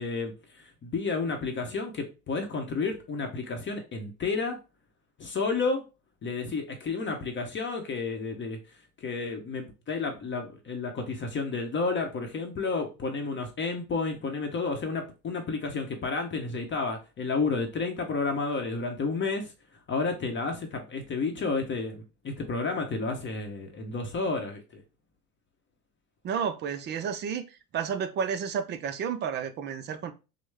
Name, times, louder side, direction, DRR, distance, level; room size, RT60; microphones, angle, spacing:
voice 1, 0.0-4.6 5.2-5.8 6.2-8.6 9.0-19.5 19.9-24.8, left 4 dB, 25° left, 0.8 m, -31 dB
voice 2, 26.2-27.5 27.7-30.1, right 7 dB, 25° right, 0.4 m, -31 dB
6.1 x 2.1 x 3.3 m
hypercardioid pair, 90°, 45 cm